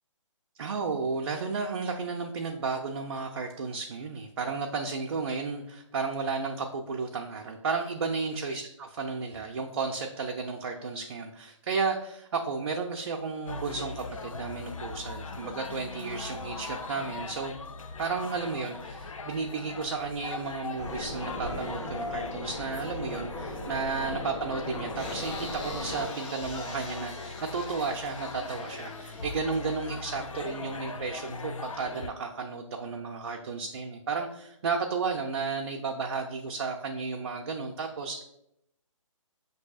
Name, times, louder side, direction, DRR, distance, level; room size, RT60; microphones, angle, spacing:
voice 1, 0.6-17.5 18.0-38.2, right 4 dB, 50° right, 1 dB, 0.4 m, -33 dB
sound 1, 13.5-32.1, left 3 dB, 80° left, 0.4 m, -40 dB
sound 2, 20.8-26.1, left 1 dB, 65° left, 1.3 m, -37 dB
sound 3, 24.9-30.3, left 1 dB, 25° left, 0.6 m, -44 dB
5.8 x 2.7 x 2.3 m, 0.80 s
figure-of-eight pair, 140°, 17 cm